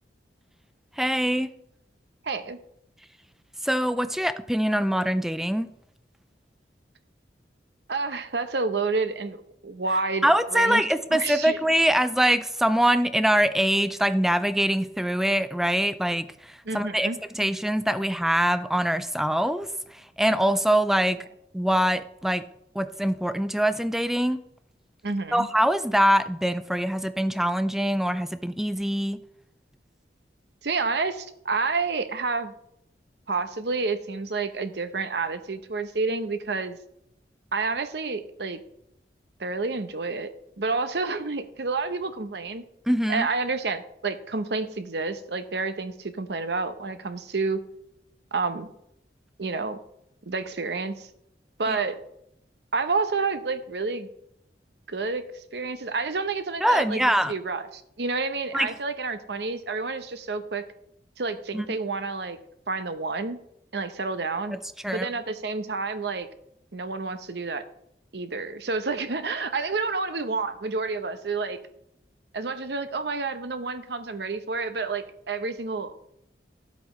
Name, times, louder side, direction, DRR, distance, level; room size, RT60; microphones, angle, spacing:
voice 1, 1.0-1.5 3.6-5.7 10.2-17.1 17.3-21.2 21.5-22.5 22.7-24.4 25.3-29.2 42.9-43.3 51.7-51.8 56.6-57.3 58.5-58.7 61.5-61.7 64.5-64.6 64.8-65.1, equal, ahead, 12 dB, 0.4 m, -24 dB
voice 2, 2.2-2.6 7.9-10.8 11.2-11.6 16.6-17.2 25.0-25.5 30.6-32.5 33.3-36.8 37.5-38.6 39.4-40.3 40.6-42.6 43.1-47.6 48.3-48.7 49.4-49.8 50.3-51.1 51.6-52.0 52.7-54.1 54.9-60.6 61.2-62.4 62.7-63.4 63.7-64.6 64.9-66.3 66.7-67.7 68.1-71.6 72.3-75.9, right 4 dB, 70° right, 10 dB, 0.8 m, -29 dB
12.5 x 8.3 x 3.2 m, 0.77 s
head